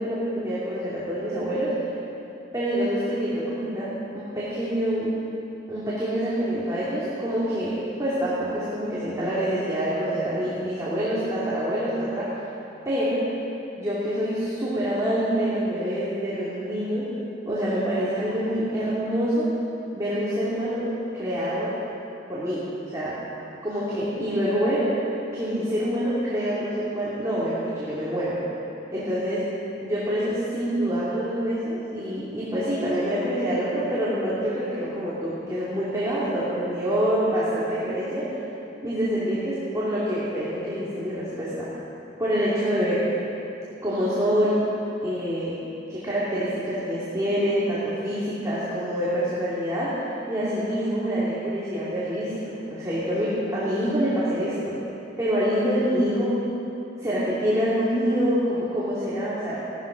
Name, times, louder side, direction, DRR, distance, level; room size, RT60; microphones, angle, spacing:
voice 1, 0.0-1.7 2.5-5.1 5.7-12.3 12.8-13.2 13.8-17.1 17.5-19.5 19.9-20.9 21.1-21.7 22.3-22.6 22.9-23.2 23.6-24.9 25.3-28.4 28.9-29.4 29.8-38.2 38.8-41.7 42.2-43.0 43.8-44.6 45.0-45.5 45.9-49.9 50.3-54.7 55.2-56.3 57.0-59.6, equal, 15° right, -10 dB, 2.6 m, -26 dB
17.0 x 13.0 x 5.1 m, 2.9 s
head